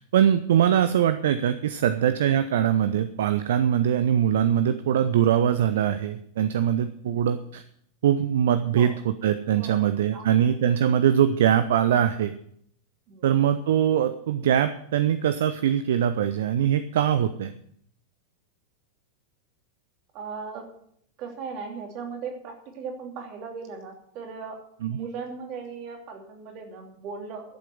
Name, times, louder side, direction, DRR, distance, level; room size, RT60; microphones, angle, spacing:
voice 1, 0.0-7.6 8.0-12.3 13.2-17.5 24.8-25.0, right 9 dB, 60° right, 12 dB, 0.6 m, -22 dB
voice 2, 10.1-10.5 13.1-13.3 20.1-20.7 21.2-24.6 24.9-27.4, right 5 dB, 40° right, 2 dB, 2.9 m, -38 dB
12.5 x 7.5 x 7.8 m, 0.68 s
figure-of-eight pair, 90°, 0 cm